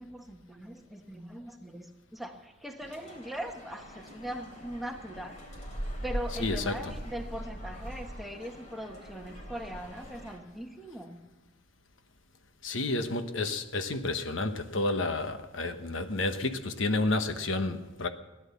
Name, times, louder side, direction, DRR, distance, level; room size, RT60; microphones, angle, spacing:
voice 1, 0.0-5.3 6.0-11.2, equal, ahead, 1.3 m, -40 dB
sound 1, 2.8-10.4, equal, 40° left, 3.7 m, -41 dB
voice 2, 6.4-7.0 12.6-18.1, left 2 dB, 80° left, 1.1 m, -30 dB
17.0 x 11.0 x 7.0 m
head